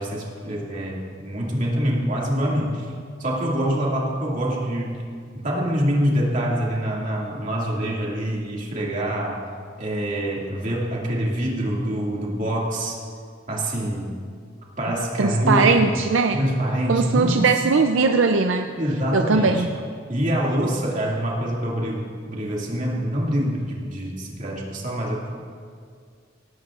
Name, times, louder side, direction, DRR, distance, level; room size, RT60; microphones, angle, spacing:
voice 1, 0.0-2.9 3.2-5.0 5.3-9.5 9.8-13.0 13.5-14.1 14.8-15.9 16.3-17.5 18.8-19.7 20.1-25.3, equal, 40° right, -3 dB, 2.3 m, -25 dB
voice 2, 15.2-16.4 16.9-18.7 19.1-19.7, right 4 dB, 75° right, 6 dB, 0.5 m, -19 dB
17.5 x 15.0 x 2.5 m, 2.1 s
head